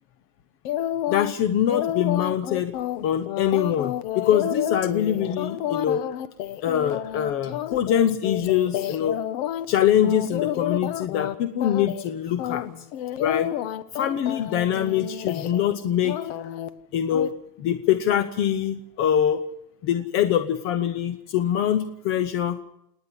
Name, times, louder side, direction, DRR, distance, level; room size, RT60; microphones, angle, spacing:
sound 1, 0.6-1.3 1.7-9.7 10.0-11.3 11.6-12.1 12.4-15.7 16.0-16.7 17.1-17.3, left 12 dB, 55° left, 1.2 m, -30 dB
voice 1, 1.1-2.7 3.0-6.1 6.6-9.2 9.7-12.6 13.2-13.5 13.9-16.2 16.9-17.3 17.6-19.4 19.8-22.6, left 10 dB, 30° left, 10 dB, 0.7 m, -23 dB
28.5 x 10.0 x 9.6 m, 0.82 s
supercardioid pair, 175°, 47 cm